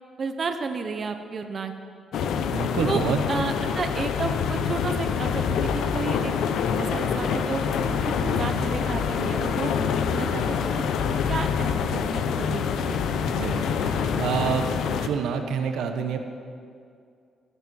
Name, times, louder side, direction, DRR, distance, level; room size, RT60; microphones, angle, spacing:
voice 1, 0.2-1.7 2.8-3.0 3.3-6.3 6.8-7.6 8.0-9.7 10.1-10.4 10.7-10.8 11.3-13.0, right 4 dB, 40° right, 7 dB, 0.8 m, -31 dB
sound 1, 2.1-15.1, left 6 dB, 80° left, 0.8 m, -26 dB
voice 2, 2.5-3.2 13.1-14.7 15.0-16.2, right 6 dB, 90° right, 6 dB, 1.0 m, -28 dB
17.0 x 8.2 x 6.3 m, 2.3 s
cardioid pair, 120°, 0 cm